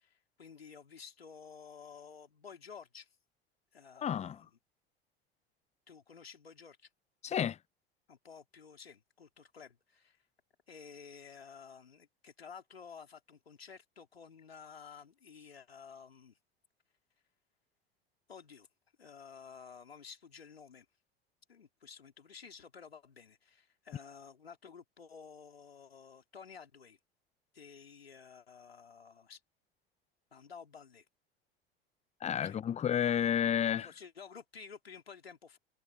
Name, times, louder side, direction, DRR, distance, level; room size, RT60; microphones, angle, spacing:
voice 1, 0.0-3.2 3.7-4.5 5.9-6.9 8.1-10.2 10.7-16.4 18.3-18.7 19.0-20.9 21.5-27.0 27.5-29.4 30.3-31.1 32.4-32.6 33.6-35.6, left 6 dB, 80° left, 3.6 m, -52 dB
voice 2, 4.0-4.4 7.2-7.6 32.2-33.9, left 9 dB, 20° left, 0.8 m, -31 dB
figure-of-eight pair, 75°, 30 cm